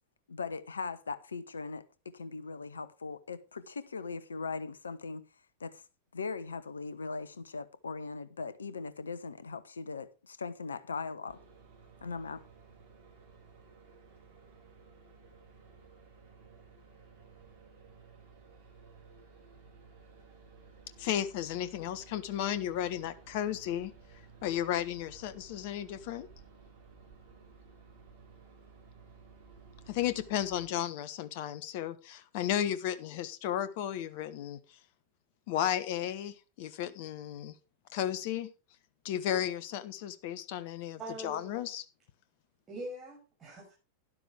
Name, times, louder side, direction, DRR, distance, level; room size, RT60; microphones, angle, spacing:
voice 1, 0.3-5.2 5.6-5.8 6.1-11.4 12.0-12.4, left 4 dB, 75° left, 1.0 m, -39 dB
sound 1, 11.3-30.7, right 4 dB, 60° right, 5.7 m, -56 dB
voice 2, 21.0-23.9 24.4-26.3 29.9-34.6 35.5-37.5 37.9-38.5 39.0-41.8, left 10 dB, 50° left, 1.2 m, -34 dB
voice 3, 41.0-41.5 42.7-43.7, equal, 20° right, 6.7 m, -42 dB
12.5 x 11.5 x 3.5 m
figure-of-eight pair, 90°, 0 cm